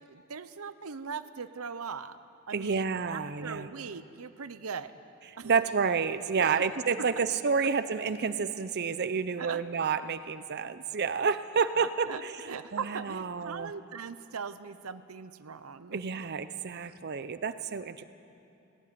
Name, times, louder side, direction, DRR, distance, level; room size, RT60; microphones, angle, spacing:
voice 1, 0.1-2.2 2.5-4.9 5.4-5.6 6.4-6.6 7.0-7.1 9.4-9.6 10.6-10.7 11.2-11.3 11.8-12.2 12.5-16.0, right 6 dB, 90° right, 13 dB, 0.7 m, -40 dB
voice 2, 2.5-3.7 5.4-13.7 15.9-18.0, right 5 dB, 50° right, 12 dB, 0.6 m, -30 dB
17.5 x 17.0 x 9.5 m, 2.7 s
head